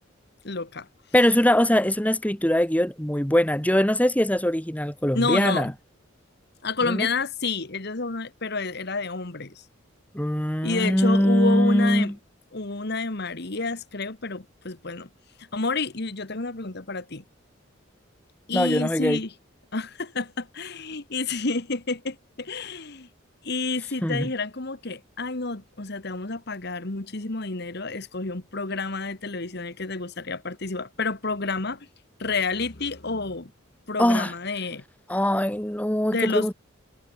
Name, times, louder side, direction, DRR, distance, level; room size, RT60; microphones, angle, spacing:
voice 1, 0.4-0.9 5.1-5.7 6.6-9.6 10.6-12.1 12.5-15.1 15.4-17.2 18.5-19.3 19.7-23.1 23.4-31.9 32.2-33.5 33.9-34.8 36.1-36.5, left 3 dB, 55° left, 1.7 m, -29 dB
voice 2, 1.1-5.7 6.8-7.1 10.1-12.1 18.5-19.2 24.0-24.3 34.0-34.3 35.1-36.5, equal, 5° left, 1.8 m, -22 dB
head